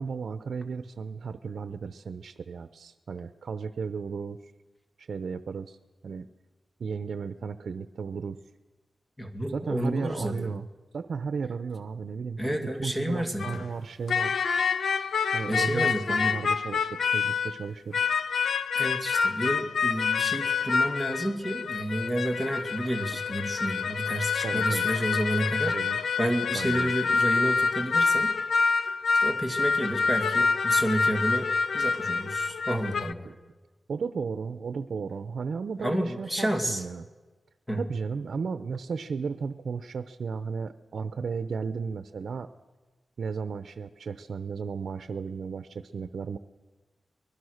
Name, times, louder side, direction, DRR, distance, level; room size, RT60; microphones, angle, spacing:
voice 1, 0.0-4.4 5.0-5.8 6.0-6.3 6.8-8.4 9.5-10.7 10.9-14.4 15.3-18.1 23.1-23.2 24.4-24.9 25.7-26.0 26.5-26.9 33.2-33.4 33.9-37.0 37.8-42.5 43.2-46.4, right 5 dB, 75° right, 11 dB, 0.8 m, -34 dB
voice 2, 9.2-10.5 12.4-13.6 15.5-16.3 18.8-25.8 26.2-28.3 29.2-31.5 31.7-33.3 35.8-36.8 37.7-37.8, right 1 dB, 10° left, 5 dB, 2.3 m, -30 dB
sound 1, 13.4-13.6 14.1-17.7 17.9-33.1, left 5 dB, 80° left, 0.8 m, -27 dB
25.0 x 21.0 x 6.6 m, 1.3 s
wide cardioid pair, 100°, 0 cm